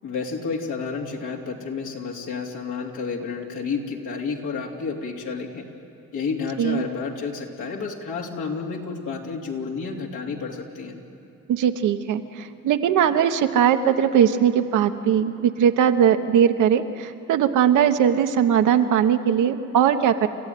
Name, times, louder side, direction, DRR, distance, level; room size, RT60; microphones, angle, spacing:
voice 1, 0.0-5.7 6.1-11.0, left 5 dB, 80° left, 0 dB, 3.0 m, -30 dB
voice 2, 11.5-20.3, right 9 dB, 80° right, 7 dB, 1.2 m, -20 dB
29.5 x 14.5 x 9.4 m, 2.7 s
cardioid pair, 90°, 30 cm